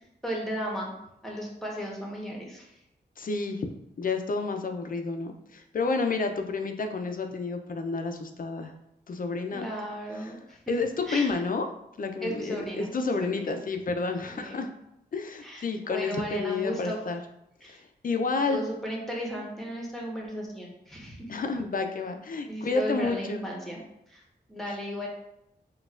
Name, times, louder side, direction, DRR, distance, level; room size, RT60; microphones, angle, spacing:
voice 1, 0.2-0.9 1.2-2.7 9.5-10.6 11.1-11.3 12.2-13.5 14.2-14.6 15.4-17.0 17.6-17.8 18.5-21.3 22.5-23.8 24.1-24.2 24.5-25.1, equal, ahead, -2 dB, 1.0 m, -35 dB
voice 2, 3.2-3.7 4.0-8.7 9.1-9.6 10.2-10.3 10.7-11.7 12.0-14.7 15.1-17.2 17.6-18.6 21.3-23.5 24.7-24.8, left 4 dB, 50° left, 6 dB, 0.4 m, -30 dB
4.0 x 2.3 x 2.4 m, 0.81 s
cardioid pair, 50°, 18 cm